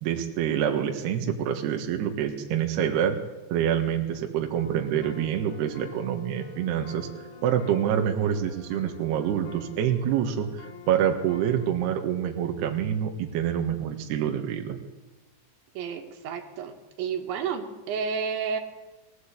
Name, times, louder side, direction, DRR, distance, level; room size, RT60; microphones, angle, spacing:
voice 1, 0.0-3.2 3.5-7.1 7.4-10.5 10.9-14.8, right 9 dB, 70° right, 4 dB, 3.4 m, -26 dB
sound 1, 4.6-11.9, left 5 dB, 85° left, 5.7 m, -47 dB
voice 2, 15.8-16.7 17.0-18.6, right 6 dB, 90° right, 4 dB, 4.2 m, -31 dB
21.5 x 15.0 x 8.4 m, 1.1 s
omnidirectional pair, 5.1 m